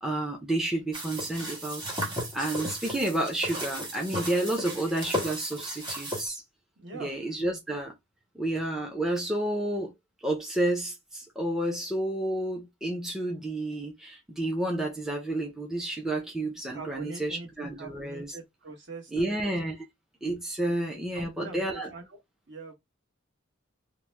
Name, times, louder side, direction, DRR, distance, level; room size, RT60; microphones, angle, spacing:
voice 1, 0.0-6.4 6.9-7.9 8.3-9.9 10.2-18.3 19.1-19.8 20.2-21.9, right 1 dB, 5° right, 0.5 m, -30 dB
sound 1, 0.9-6.3, equal, 25° right, 1.4 m, -35 dB
voice 2, 6.8-7.1 16.7-19.5 21.1-22.2 22.5-22.7, right 3 dB, 60° right, 1.2 m, -43 dB
2.9 x 2.1 x 3.2 m
head